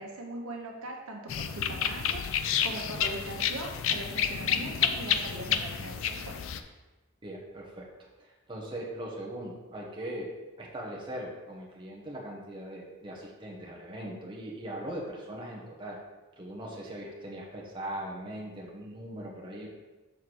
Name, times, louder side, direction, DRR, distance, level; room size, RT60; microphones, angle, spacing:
voice 1, 0.0-6.4, right 1 dB, 85° right, 0 dB, 1.2 m, -40 dB
sound 1, 1.3-6.6, left 8 dB, 65° left, 0.4 m, -30 dB
voice 2, 7.2-7.9 8.2-10.3 10.6-16.0 16.4-19.7, right 1 dB, 20° right, -3 dB, 1.1 m, -40 dB
6.4 x 3.5 x 6.1 m, 1.2 s
head